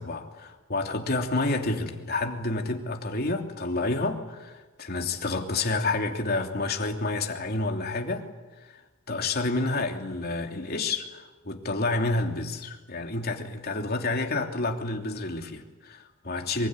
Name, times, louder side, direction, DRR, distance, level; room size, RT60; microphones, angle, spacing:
voice 1, 0.0-8.2 9.1-16.7, left 2 dB, 45° left, 3 dB, 3.1 m, -29 dB
24.5 x 23.5 x 9.7 m, 1.2 s
head